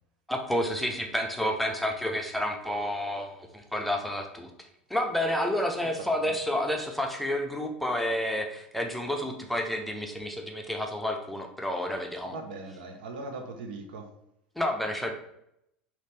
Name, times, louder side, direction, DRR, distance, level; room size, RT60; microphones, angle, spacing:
voice 1, 0.3-12.3 14.6-15.1, left 1 dB, ahead, 2 dB, 0.6 m, -30 dB
voice 2, 5.8-6.3 12.2-14.1, right 3 dB, 65° right, 4 dB, 0.6 m, -40 dB
4.0 x 2.8 x 3.3 m, 0.79 s
figure-of-eight pair, 75°, 6 cm